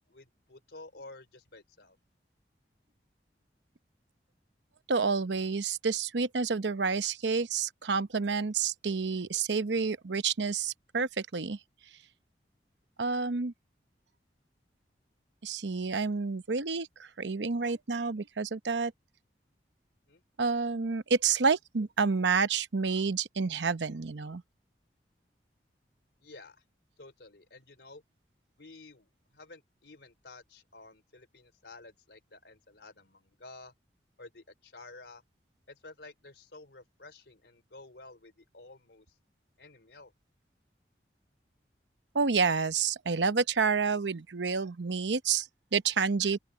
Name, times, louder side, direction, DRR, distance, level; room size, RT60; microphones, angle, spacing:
voice 1, 0.1-2.0 20.1-20.2 26.2-26.6 27.0-28.0 28.6-33.7 34.2-35.2 35.7-39.1 39.6-40.1, left 2 dB, 75° left, 3.2 m, -52 dB
voice 2, 4.9-11.6 13.0-13.5 15.4-18.9 20.4-24.4 42.1-46.4, right 5 dB, 90° right, 0.8 m, -29 dB
open air
head